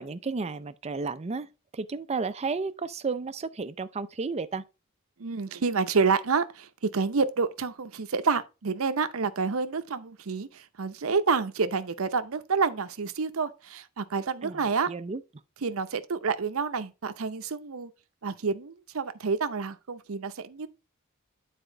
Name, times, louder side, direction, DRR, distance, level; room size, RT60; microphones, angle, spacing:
voice 1, 0.0-1.5 1.7-4.6 14.4-14.6 14.9-15.2, right 4 dB, 30° right, 0.5 m, -32 dB
voice 2, 5.2-14.9 15.6-17.9 18.2-20.7, right 5 dB, 75° right, 0.7 m, -28 dB
9.2 x 4.3 x 3.8 m
head